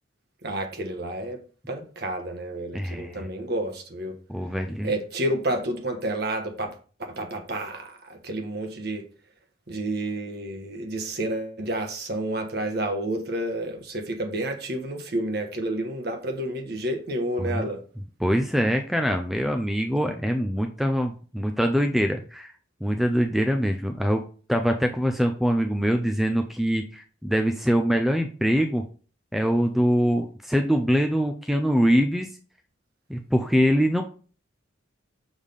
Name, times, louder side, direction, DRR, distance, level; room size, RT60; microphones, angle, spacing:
voice 1, 0.4-1.4 1.7-4.2 4.8-6.7 7.1-9.0 9.7-17.8, right 1 dB, 55° right, 1.3 m, -30 dB
voice 2, 2.7-3.3 4.3-4.9 17.4-17.7 18.2-22.5 22.8-24.2 24.5-28.8 29.3-32.3 33.1-34.0, equal, ahead, 0.4 m, -23 dB
6.4 x 3.6 x 5.2 m
head